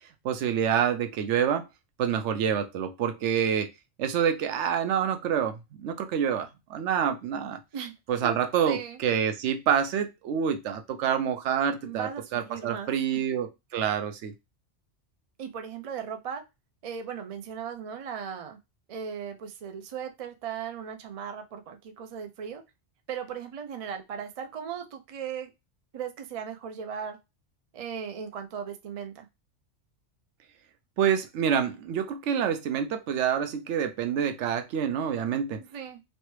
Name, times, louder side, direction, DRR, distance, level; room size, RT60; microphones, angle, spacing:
voice 1, 0.2-1.6 2.0-3.7 4.0-7.6 8.1-14.3 31.0-35.6, right 8 dB, 80° right, 0.9 m, -27 dB
voice 2, 8.6-9.0 11.8-13.2 15.4-16.4 16.8-18.6 18.9-22.6 23.1-25.5 25.9-27.2 27.7-29.3 35.6-36.0, right 7 dB, 60° right, 0.3 m, -37 dB
3.2 x 2.0 x 3.0 m
omnidirectional pair, 1.2 m